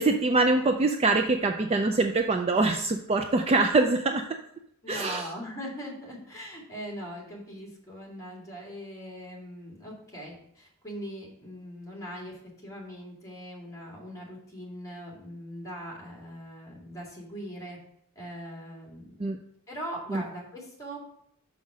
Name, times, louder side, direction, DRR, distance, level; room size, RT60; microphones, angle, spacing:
voice 1, 0.0-4.3 4.9-5.3 19.2-19.4 20.1-20.2, right 3 dB, 25° right, 6 dB, 0.4 m, -24 dB
voice 2, 4.8-17.8 18.2-19.2 19.7-21.0, equal, 15° left, -3 dB, 2.2 m, -41 dB
6.3 x 5.6 x 4.8 m, 0.71 s
head